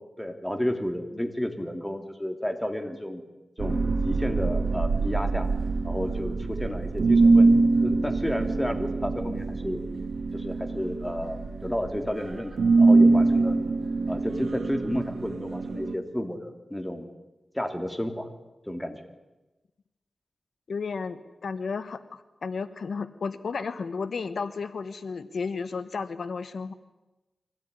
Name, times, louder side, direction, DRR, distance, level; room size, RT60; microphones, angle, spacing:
voice 1, 0.2-3.2 3.6-5.5 5.8-7.5 7.8-9.8 10.3-13.6 14.1-17.1 17.5-18.3 18.7-19.0, equal, 10° left, 6 dB, 3.2 m, -31 dB
sound 1, 3.6-15.9, right 3 dB, 85° right, 2.1 m, -24 dB
voice 2, 20.7-26.7, left 5 dB, 80° left, 12 dB, 1.2 m, -33 dB
24.5 x 17.5 x 9.9 m, 1.1 s
wide cardioid pair, 75°, 0 cm